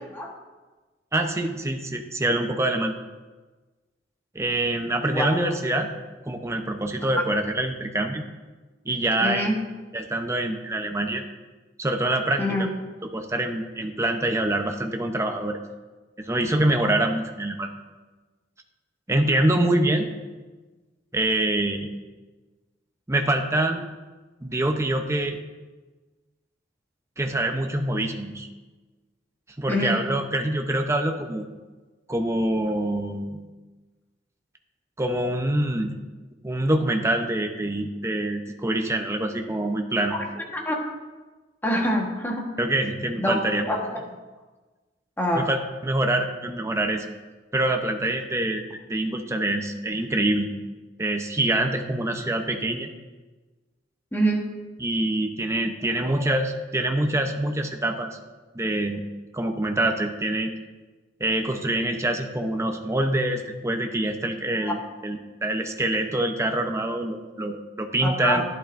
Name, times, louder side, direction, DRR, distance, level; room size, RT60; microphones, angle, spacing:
voice 1, 1.1-2.9 4.3-5.9 6.3-8.2 8.8-9.5 9.9-11.2 11.8-12.4 13.1-15.6 16.2-17.7 19.1-20.1 21.1-21.9 23.1-23.8 24.4-25.4 27.2-28.5 29.6-31.5 32.1-33.4 35.0-36.0 36.4-40.1 42.6-43.6 45.3-47.1 47.5-48.6 48.9-50.5 51.0-52.9 54.8-58.1 58.5-59.0 59.3-60.5 61.2-64.8 65.0-68.4, right 1 dB, 15° right, 4 dB, 0.7 m, -25 dB
voice 2, 9.2-9.6 12.4-12.7 29.7-30.0 40.1-40.9 41.6-42.5 43.2-44.0 45.2-45.5 54.1-54.4 64.6-64.8 68.0-68.4, equal, 10° left, 0 dB, 1.3 m, -25 dB
12.0 x 10.5 x 2.6 m, 1.2 s
head